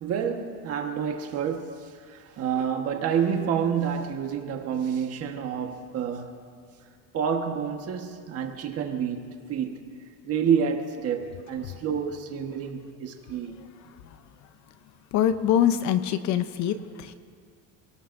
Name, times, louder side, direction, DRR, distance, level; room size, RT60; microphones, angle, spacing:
voice 1, 0.0-6.3 7.1-9.8 10.2-13.6, right 7 dB, 35° right, 3 dB, 1.4 m, -28 dB
voice 2, 15.1-17.1, left 10 dB, 45° left, 11 dB, 0.8 m, -24 dB
28.5 x 18.5 x 2.7 m, 2.1 s
cardioid pair, 170°, 41 cm